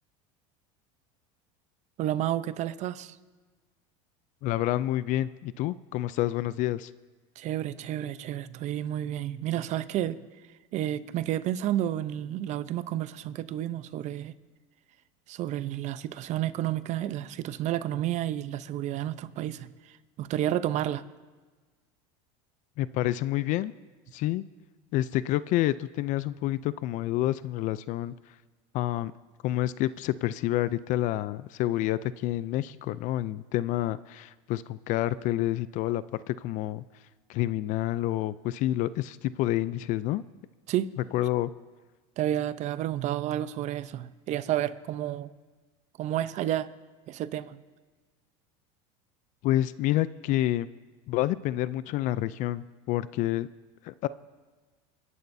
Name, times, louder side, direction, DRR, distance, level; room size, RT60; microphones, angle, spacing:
voice 1, 2.0-3.2 7.4-10.2 10.7-14.3 15.3-21.0 40.7-40.9 42.2-45.3 46.0-46.7 47.1-47.6, right 12 dB, 45° right, 0.7 m, -31 dB
voice 2, 4.4-6.9 22.8-23.7 24.1-24.4 24.9-28.1 28.7-29.1 29.4-36.8 37.3-40.2 41.1-41.5 49.4-50.7 51.1-53.5 53.8-54.1, left 14 dB, 50° left, 0.4 m, -28 dB
29.5 x 11.0 x 2.7 m
supercardioid pair, 120°, 16 cm